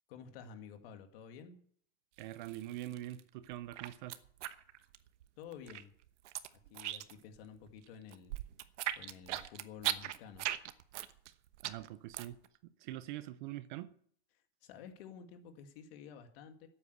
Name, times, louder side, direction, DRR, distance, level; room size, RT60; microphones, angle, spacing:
voice 1, 0.1-1.6 5.4-5.9 6.7-8.4 9.0-10.5 14.6-16.7, left 7 dB, 50° left, 2.1 m, -51 dB
voice 2, 2.2-4.2 11.3-11.4 11.6-13.9, right 14 dB, 45° right, 0.6 m, -44 dB
sound 1, 2.2-3.2 3.5-5.3 5.5-7.4 7.7-12.5, right 13 dB, 80° right, 1.1 m, -39 dB
12.5 x 8.7 x 8.0 m
supercardioid pair, 170°, 35 cm